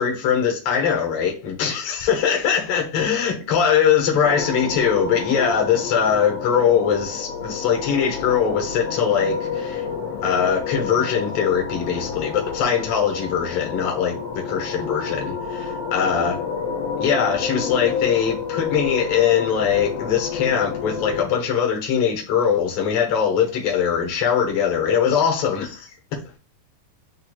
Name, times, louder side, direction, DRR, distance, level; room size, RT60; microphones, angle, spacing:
voice 1, 0.0-9.9 10.2-16.4 17.0-25.9, left 7 dB, 65° left, 1.7 m, -21 dB
sound 1, 4.2-21.2, left 6 dB, 85° left, 2.5 m, -29 dB
7.8 x 2.6 x 2.3 m
omnidirectional pair, 3.5 m